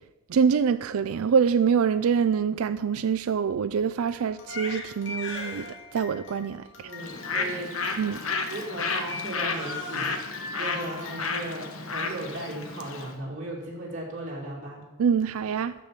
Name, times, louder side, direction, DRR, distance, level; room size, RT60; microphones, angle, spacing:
voice 1, 0.3-5.7 5.9-6.6 8.0-8.2 15.0-15.7, right 6 dB, 85° right, 0.4 m, -25 dB
Crying sobbing, 4.1-12.3, left 2 dB, 55° left, 2.6 m, -40 dB
voice 2, 6.8-7.7 8.5-14.8, right 1 dB, 35° right, 2.4 m, -37 dB
Bird, 7.0-13.1, left 4 dB, 75° left, 1.2 m, -32 dB
10.5 x 7.0 x 7.4 m
head